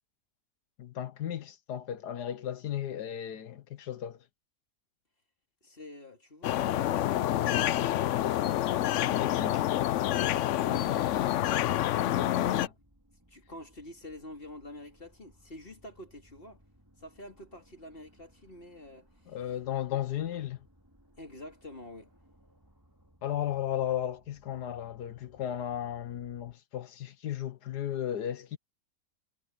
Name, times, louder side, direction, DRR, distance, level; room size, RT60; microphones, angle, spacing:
voice 1, 0.8-4.2 9.2-9.6 12.2-12.7 19.3-20.6 23.2-28.6, left 11 dB, 85° left, 1.6 m, -35 dB
voice 2, 5.6-8.1 13.3-16.6 17.0-19.4 21.2-22.1, left 1 dB, 35° left, 3.0 m, -47 dB
sound 1, 6.4-12.7, left 13 dB, 70° left, 0.7 m, -27 dB
sound 2, 7.4-26.5, equal, 15° right, 4.3 m, -64 dB
omnidirectional pair, 1.7 m